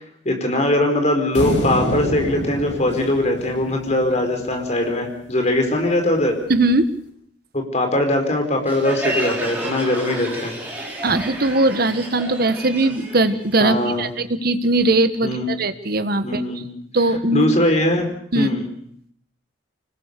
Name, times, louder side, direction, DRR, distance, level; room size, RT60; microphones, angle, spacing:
voice 1, 0.2-6.3 7.5-10.6 13.6-14.1 15.2-15.5 16.2-16.7 17.3-18.1 18.3-18.7, left 1 dB, 35° left, 4 dB, 4.6 m, -21 dB
sound 1, 1.3-4.7, left 1 dB, 75° left, 6.5 m, -27 dB
voice 2, 6.5-6.9 11.0-16.4 16.9-17.5 18.3-18.5, right 2 dB, 55° right, 11 dB, 1.4 m, -20 dB
Crowd, 8.7-14.1, right 1 dB, 10° right, 6.3 m, -30 dB
25.5 x 20.0 x 6.8 m, 0.65 s
head